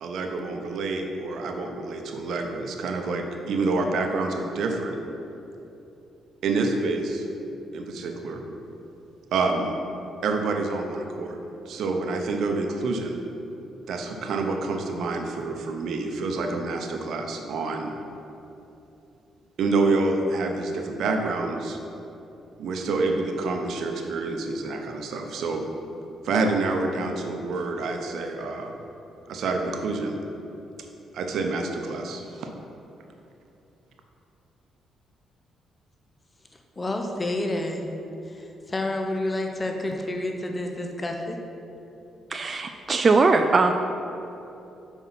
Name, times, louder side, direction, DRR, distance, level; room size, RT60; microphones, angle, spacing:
voice 1, 0.0-5.0 6.4-7.2 7.7-8.4 9.3-9.7 10.2-11.4 11.7-13.1 13.9-17.9 19.6-21.8 22.6-25.6 26.2-28.7 29.3-30.2 31.1-32.5, right 3 dB, 70° right, 3 dB, 0.8 m, -27 dB
voice 2, 36.8-37.9 38.3-41.4, left 1 dB, 25° left, 3 dB, 0.6 m, -29 dB
voice 3, 42.3-43.7, right 3 dB, 35° right, 6 dB, 0.3 m, -20 dB
5.6 x 4.5 x 5.9 m, 2.9 s
cardioid pair, 90°, 0 cm